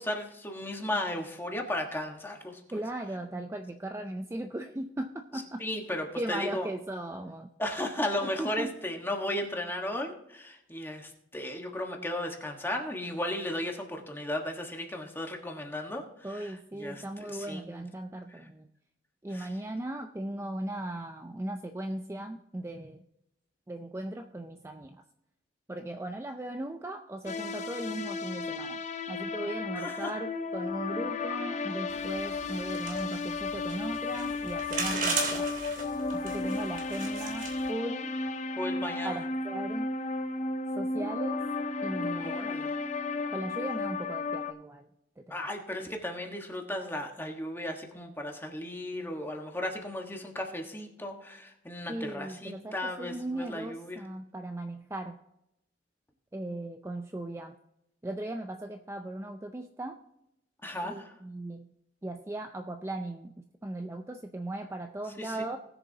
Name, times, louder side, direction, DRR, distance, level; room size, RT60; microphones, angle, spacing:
voice 1, 0.0-2.8 5.6-6.7 7.6-17.8 19.3-19.5 29.7-30.1 38.6-39.2 42.0-42.8 45.3-54.0 60.6-61.1 65.2-65.4, left 1 dB, 10° left, 2 dB, 1.4 m, -35 dB
voice 2, 2.7-5.6 6.2-7.5 8.2-8.7 16.2-18.7 19.2-23.0 23.7-25.0 25.7-28.8 29.1-35.5 36.1-38.1 39.0-39.9 40.8-41.4 41.8-42.4 43.3-44.8 45.2-45.5 51.9-55.2 56.3-57.6 58.0-60.0 60.8-61.7 62.0-65.6, right 1 dB, 15° right, 5 dB, 0.4 m, -38 dB
sound 1, 27.3-44.5, left 3 dB, 40° left, 0.6 m, -34 dB
sound 2, 31.9-37.7, right 4 dB, 50° right, 2.8 m, -36 dB
19.5 x 6.8 x 2.8 m, 0.84 s
head